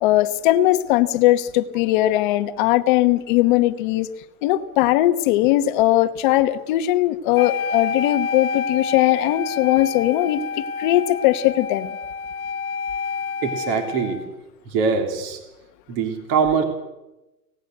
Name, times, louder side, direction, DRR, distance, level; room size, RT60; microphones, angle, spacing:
voice 1, 0.0-4.1 4.4-10.4 10.8-11.9, left 15 dB, 35° left, 10 dB, 1.2 m, -19 dB
Wind instrument woodwind instrument, 7.3-14.3, left 5 dB, 70° left, 1.6 m, -28 dB
voice 2, 13.4-14.2 14.6-15.4 15.9-16.6, right 5 dB, 35° right, 5 dB, 3.2 m, -22 dB
25.0 x 18.5 x 7.9 m, 1.0 s
hypercardioid pair, 160°, 45 cm